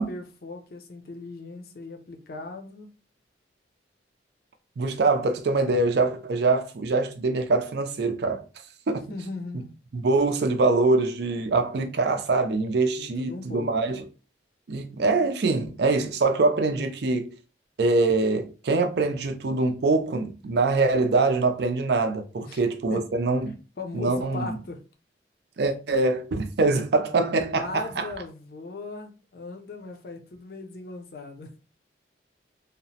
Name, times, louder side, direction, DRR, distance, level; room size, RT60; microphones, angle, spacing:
voice 1, 0.0-2.9 9.1-9.7 13.0-13.7 22.4-22.6 22.9-23.1 23.8-24.8 27.5-31.6, left 3 dB, 55° left, 0.5 m, -38 dB
voice 2, 4.8-8.4 8.9-9.1 9.9-14.0 14.7-17.3 17.8-23.5 23.9-24.5 25.6-28.1, right 3 dB, 60° right, 0.4 m, -24 dB
2.8 x 2.0 x 2.7 m
head